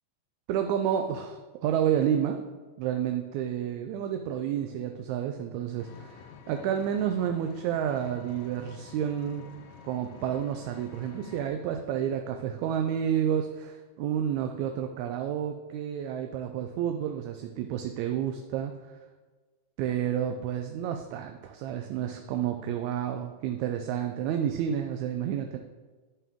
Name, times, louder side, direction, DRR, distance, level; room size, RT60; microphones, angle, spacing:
voice 1, 0.5-2.4 2.8-9.4 9.8-18.7 19.8-25.6, right 9 dB, 80° right, 5 dB, 1.8 m, -30 dB
Vehicle, 5.8-11.5, left 7 dB, 85° left, 2.1 m, -49 dB
11.0 x 5.5 x 3.6 m, 1.3 s
omnidirectional pair, 3.3 m